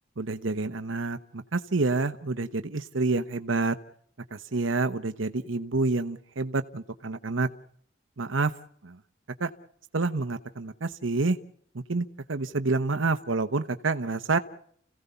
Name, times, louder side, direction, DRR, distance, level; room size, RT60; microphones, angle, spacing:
voice 1, 0.2-3.8 4.3-7.5 8.2-8.5 8.8-9.0 9.4-9.5 9.9-11.4 11.9-14.4, right 3 dB, 80° right, 9 dB, 1.0 m, -28 dB
30.0 x 16.5 x 6.9 m, 0.65 s
head